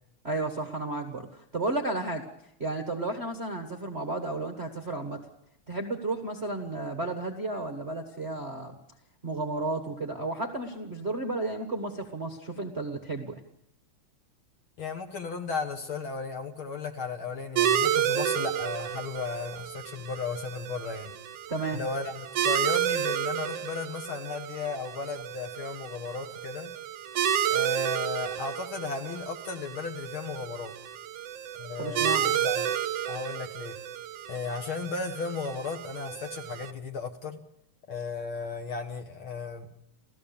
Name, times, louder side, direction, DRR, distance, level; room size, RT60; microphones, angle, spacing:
voice 1, 0.2-2.3 2.6-5.3 5.7-8.8 9.2-13.4 21.5-21.8 31.8-32.3, right 2 dB, 30° right, 5 dB, 1.2 m, -33 dB
voice 2, 14.8-21.1 21.7-26.7 27.5-30.7 31.6-32.7 33.0-33.8 34.3-37.4 37.9-39.7, left 4 dB, 50° left, 5 dB, 1.9 m, -35 dB
sound 1, 17.6-36.7, right 10 dB, 65° right, 1.8 m, -31 dB
29.5 x 15.0 x 7.1 m, 0.81 s
omnidirectional pair, 3.4 m